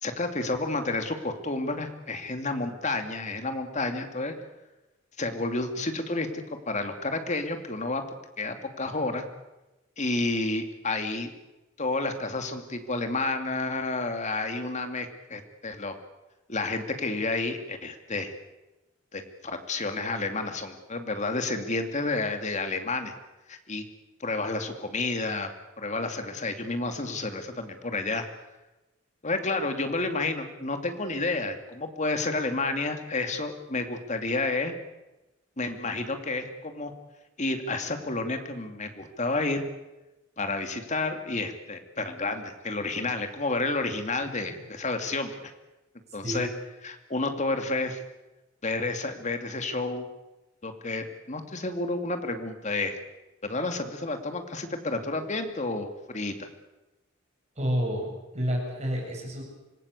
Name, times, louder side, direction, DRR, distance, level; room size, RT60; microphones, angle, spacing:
voice 1, 0.0-4.3 5.2-9.2 10.0-11.3 11.8-16.0 16.5-18.3 19.1-23.1 23.5-23.8 24.2-25.5 25.8-28.2 29.2-34.7 35.6-36.9 37.4-39.6 40.4-45.5 46.1-46.5 46.8-48.0 48.6-50.1 50.6-53.0 53.4-56.5, left 2 dB, 35° left, 6 dB, 2.5 m, -30 dB
voice 2, 57.6-58.1 58.3-59.4, equal, 35° right, 0 dB, 8.0 m, -29 dB
26.0 x 18.5 x 8.3 m, 1.0 s
head